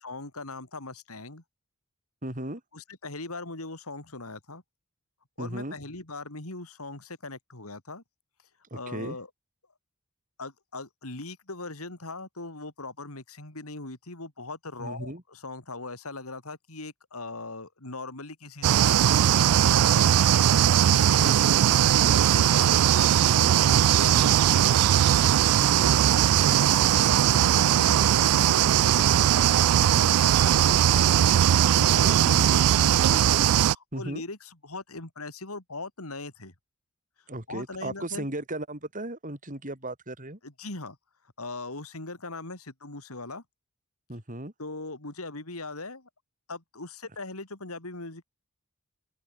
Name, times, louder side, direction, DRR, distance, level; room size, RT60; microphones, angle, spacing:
voice 1, 0.0-1.4 2.7-4.6 5.4-8.0 8.7-9.3 10.4-19.0 19.3-24.8 25.6-36.5 37.5-38.3 40.4-41.0 41.4-43.4 44.6-46.1 46.5-48.2, left 2 dB, 75° left, 3.9 m, -40 dB
voice 2, 2.2-2.6 5.4-5.7 8.7-9.2 14.8-15.2 21.1-21.4 23.2-23.6 33.9-34.2 37.3-40.4 44.1-44.5, right 1 dB, 35° right, 4.5 m, -36 dB
sound 1, 18.6-33.7, right 10 dB, 85° right, 0.4 m, -20 dB
open air
head